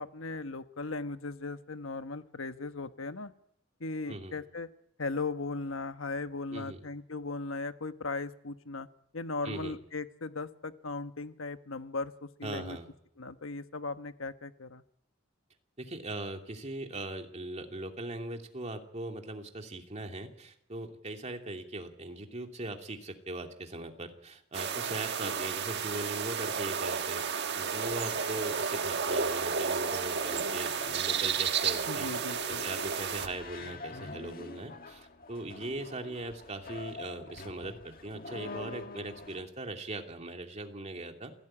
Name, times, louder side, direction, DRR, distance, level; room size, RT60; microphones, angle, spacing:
voice 1, 0.0-3.3 3.8-4.7 5.0-8.9 9.1-12.8 13.2-14.8 31.9-32.6, left 3 dB, 80° left, 10 dB, 1.2 m, -37 dB
voice 2, 9.4-9.8 12.4-12.9 15.8-32.1 32.5-41.3, right 2 dB, 35° right, 4 dB, 2.7 m, -40 dB
sound 1, 24.5-33.3, right 6 dB, 55° right, 1.5 m, -32 dB
sound 2, 27.0-39.4, left 3 dB, 45° left, 1.7 m, -47 dB
28.0 x 16.5 x 8.8 m, 0.73 s
head